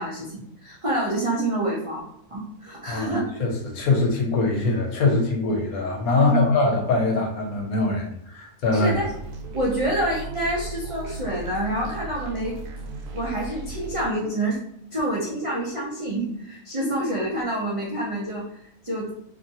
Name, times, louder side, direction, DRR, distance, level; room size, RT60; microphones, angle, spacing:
voice 1, 0.0-2.0 2.3-3.4 6.1-6.5 8.7-9.1 9.5-12.6 13.1-14.6 14.9-19.1, right 1 dB, 55° right, -6 dB, 0.3 m, -27 dB
voice 2, 2.9-8.9, left 3 dB, 75° left, 1 dB, 1.1 m, -23 dB
sound 1, 8.9-14.1, right 2 dB, 90° right, 1.1 m, -36 dB
2.8 x 2.6 x 2.7 m, 0.72 s
omnidirectional pair, 1.6 m